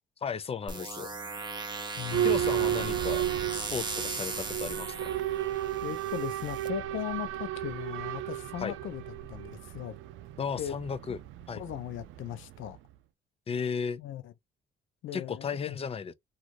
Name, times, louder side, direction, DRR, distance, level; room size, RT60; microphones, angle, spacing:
voice 1, 0.2-1.1 2.2-3.2 3.5-5.1 8.6-8.8 10.4-11.2 11.5-11.6 13.5-14.0 15.1-16.1, left 6 dB, 30° left, 0.4 m, -34 dB
sound 1, 0.7-6.7, right 3 dB, 25° right, 0.7 m, -38 dB
voice 2, 2.0-2.3 5.8-10.0 10.6-10.8 11.1-11.2 11.6-12.8 14.0-14.3 15.0-15.8, left 11 dB, 80° left, 0.5 m, -38 dB
Boat Water vehicle / Alarm, 2.1-12.8, right 12 dB, 85° right, 0.4 m, -33 dB
3.0 x 2.5 x 2.5 m
cardioid pair, 90°, 20 cm